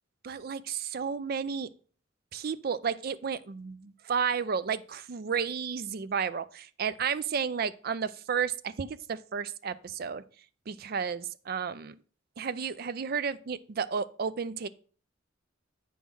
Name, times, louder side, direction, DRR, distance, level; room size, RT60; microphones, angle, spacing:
voice 1, 0.2-1.7 2.3-10.2 10.7-11.9 12.4-14.7, right 6 dB, 50° right, 0.4 m, -32 dB
8.4 x 3.7 x 6.0 m
head